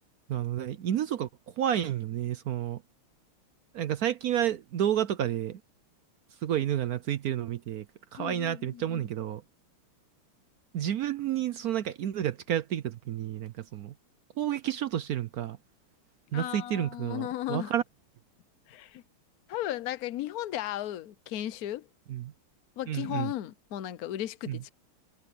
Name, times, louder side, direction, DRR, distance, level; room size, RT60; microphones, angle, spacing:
voice 1, 0.3-1.3 1.6-2.8 3.7-5.6 6.4-7.8 8.1-9.4 10.7-13.9 14.4-15.6 16.3-17.8 22.1-22.3 22.9-23.3 24.5-24.6, right 11 dB, 75° right, 0.8 m, -30 dB
voice 2, 8.2-9.1 16.3-17.7 18.7-19.0 19.5-21.9 22.8-24.7, left 13 dB, 65° left, 0.9 m, -35 dB
omnidirectional pair, 2.3 m